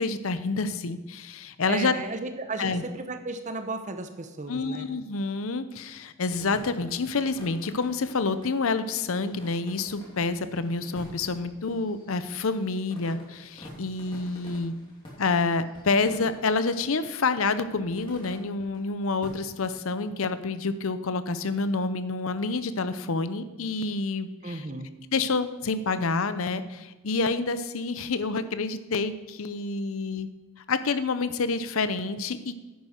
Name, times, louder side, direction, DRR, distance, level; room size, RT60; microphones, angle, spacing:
voice 1, 0.0-1.9 2.6-2.8 4.5-14.7 15.2-24.6 25.1-30.3 30.7-32.6, left 3 dB, 70° left, 12 dB, 0.7 m, -28 dB
voice 2, 1.7-4.9 24.4-24.9, right 3 dB, 35° right, 8 dB, 0.9 m, -34 dB
sound 1, 6.3-16.9 17.6-18.8 19.2-19.8, left 1 dB, 20° left, 2.7 m, -48 dB
10.5 x 9.0 x 4.4 m, 1.2 s
head